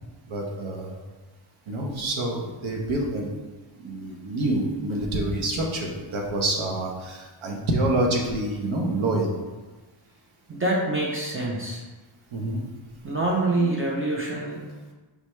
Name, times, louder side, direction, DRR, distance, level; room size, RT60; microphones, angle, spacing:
voice 1, 0.3-1.0 1.7-3.3 3.8-9.4 12.3-12.6, right 1 dB, 85° right, 0 dB, 1.0 m, -27 dB
voice 2, 10.5-11.8 13.0-14.6, right 2 dB, 25° right, -3 dB, 0.6 m, -26 dB
5.2 x 3.3 x 3.1 m, 1.2 s
wide cardioid pair, 170°, 47 cm